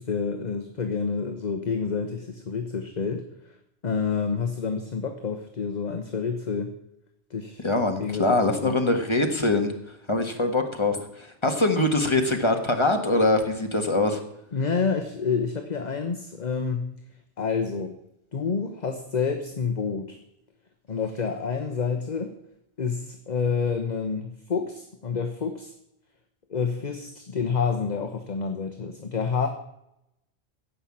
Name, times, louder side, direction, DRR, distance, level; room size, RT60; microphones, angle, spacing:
voice 1, 0.0-3.6 3.8-6.7 7.3-7.7 8.0-8.8 14.5-16.9 17.4-18.0 18.3-20.2 20.9-22.3 22.8-25.7 26.5-29.5, left 5 dB, 40° left, 6 dB, 1.0 m, -28 dB
voice 2, 7.6-9.7 10.1-14.2, left 2 dB, 25° left, 5 dB, 1.6 m, -23 dB
15.5 x 5.8 x 8.6 m, 0.83 s
omnidirectional pair, 1.1 m